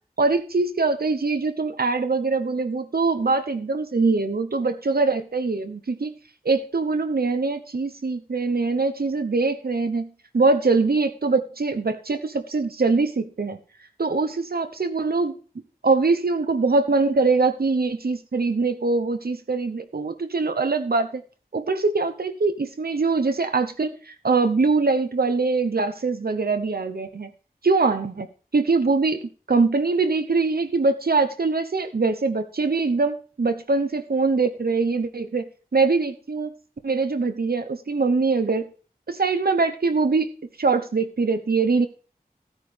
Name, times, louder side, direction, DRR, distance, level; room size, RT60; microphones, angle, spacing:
voice 1, 0.2-6.1 6.4-13.6 14.0-15.4 15.8-21.2 21.5-27.3 27.6-28.3 28.5-36.5 36.8-38.7 39.1-40.3 40.6-41.9, right 3 dB, 75° right, 8 dB, 1.0 m, -23 dB
14.5 x 9.1 x 3.5 m, 0.38 s
wide cardioid pair, 45°, 16 cm